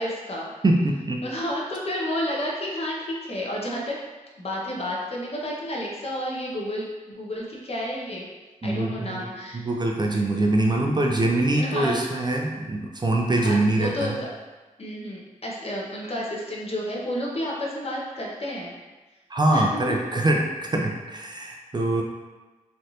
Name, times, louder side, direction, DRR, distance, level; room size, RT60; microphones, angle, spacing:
voice 1, 0.0-0.5 1.2-4.0 4.4-8.3 8.6-9.6 11.6-12.0 13.4-14.3 14.8-18.8 19.5-20.0, equal, 45° left, -3 dB, 0.8 m, -31 dB
voice 2, 0.6-1.2 8.6-9.2 9.5-14.2 19.3-22.0, right 2 dB, 30° right, 0 dB, 0.4 m, -23 dB
3.2 x 2.5 x 2.8 m, 1.2 s
cardioid pair, 55°, 14 cm